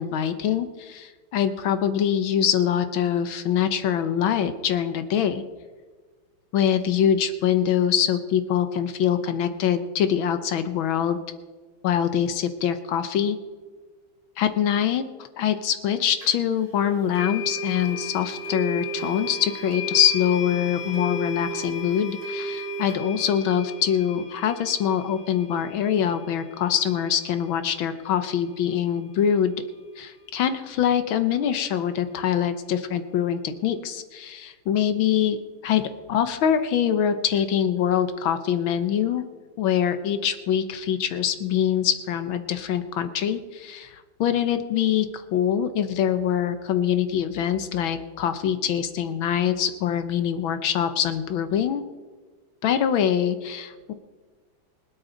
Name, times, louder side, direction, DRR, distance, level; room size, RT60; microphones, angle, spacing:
voice 1, 0.0-5.4 6.5-11.2 11.8-13.4 14.4-15.0 15.4-29.5 30.0-35.4 35.6-35.8 36.1-39.2 39.6-51.8 52.6-53.9, left 9 dB, 75° left, 10 dB, 1.6 m, -24 dB
sound 1, 16.2-16.3 17.1-28.1, left 1 dB, 25° left, 4.3 m, -34 dB
25.0 x 8.6 x 3.9 m, 1.4 s
omnidirectional pair, 2.3 m